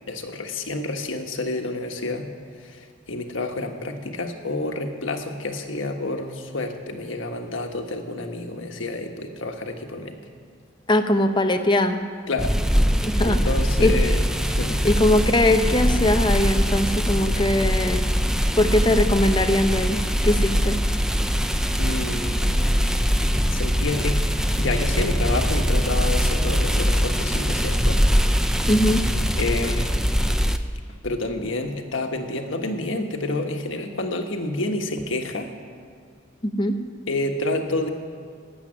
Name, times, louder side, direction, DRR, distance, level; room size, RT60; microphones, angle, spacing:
voice 1, 0.1-2.3 2.7-2.8 3.1-10.2 12.3-12.5 13.2-14.8 21.8-22.8 23.5-24.2 24.6-28.0 29.4-29.9 31.0-35.5 37.1-37.9, left 2 dB, 85° left, 4 dB, 1.4 m, -29 dB
voice 2, 10.9-12.0 13.0-13.4 13.8-14.0 14.8-18.0 18.6-20.8 28.7-29.0 36.4-36.8, left 1 dB, 25° left, 6 dB, 0.8 m, -21 dB
sound 1, 12.4-30.6, equal, 5° right, 0.5 m, -22 dB
14.5 x 8.5 x 9.9 m, 2.1 s
head